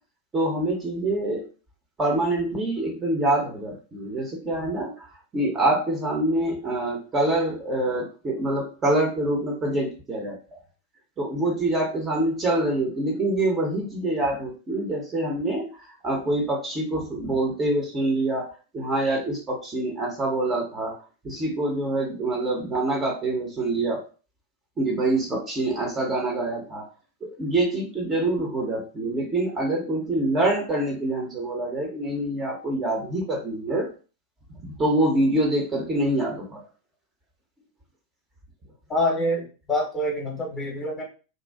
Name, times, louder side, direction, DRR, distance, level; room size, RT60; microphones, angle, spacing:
voice 1, 0.3-1.4 2.0-5.1 5.3-10.6 11.2-24.0 24.8-26.9 27.2-33.9 34.6-36.6, right 1 dB, 20° right, 0 dB, 0.7 m, -25 dB
voice 2, 38.9-41.0, left 1 dB, 20° left, -2 dB, 0.8 m, -26 dB
2.5 x 2.1 x 2.3 m, 0.35 s
figure-of-eight pair, 90°, 0 cm